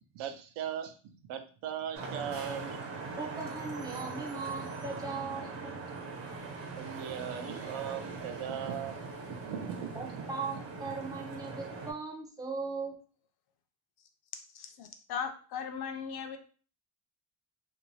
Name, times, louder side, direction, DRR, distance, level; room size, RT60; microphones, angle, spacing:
voice 1, 0.1-2.8 6.8-9.0 9.3-10.3, right 9 dB, 85° right, 6 dB, 0.6 m, -39 dB
Vehicle horn car horn honking / Traffic noise roadway noise, 1.9-11.9, right 3 dB, 60° right, 1.0 m, -41 dB
voice 2, 3.2-5.8 9.9-12.9, right 4 dB, 10° right, 0 dB, 0.3 m, -38 dB
voice 3, 14.3-16.4, left 7 dB, 55° left, 7 dB, 0.5 m, -38 dB
2.8 x 2.6 x 3.0 m, 0.40 s
cardioid pair, 165°, 48 cm